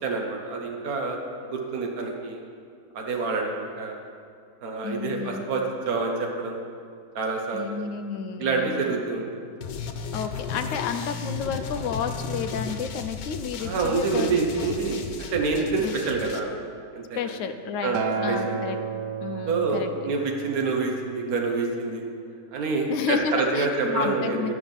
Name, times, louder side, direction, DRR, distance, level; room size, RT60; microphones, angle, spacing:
voice 1, 0.0-1.2 1.5-2.4 2.9-4.0 4.6-6.6 7.1-7.8 8.4-9.3 13.6-16.5 16.9-17.3 17.8-18.6 19.5-22.0 22.5-24.6, right 4 dB, 60° right, 1 dB, 1.6 m, -27 dB
voice 2, 4.8-5.4 7.5-8.9 10.1-14.7 15.8-15.9 17.2-18.0 18.2-18.8 19.2-19.9 22.9-24.6, left 6 dB, 60° left, 7 dB, 0.9 m, -31 dB
sound 1, 9.6-16.4, left 5 dB, 80° left, 1.4 m, -35 dB
Acoustic guitar, 17.9-22.2 23.1-23.2, right 5 dB, 80° right, 1.3 m, -33 dB
11.5 x 5.8 x 7.1 m, 2.3 s
omnidirectional pair, 1.8 m